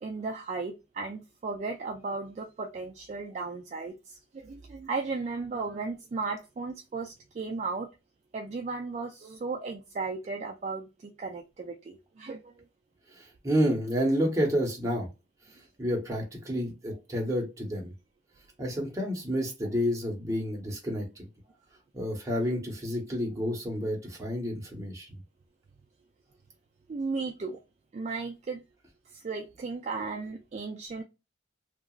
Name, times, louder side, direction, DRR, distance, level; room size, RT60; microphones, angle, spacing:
voice 1, 0.0-7.9 8.3-12.6 26.9-27.6 27.9-28.6 29.1-31.0, right 4 dB, 40° right, 2 dB, 0.3 m, -35 dB
voice 2, 13.1-15.1 15.5-17.9 18.6-21.3 21.9-25.2, equal, 20° right, -1 dB, 1.0 m, -30 dB
2.9 x 2.4 x 2.3 m, 0.26 s
head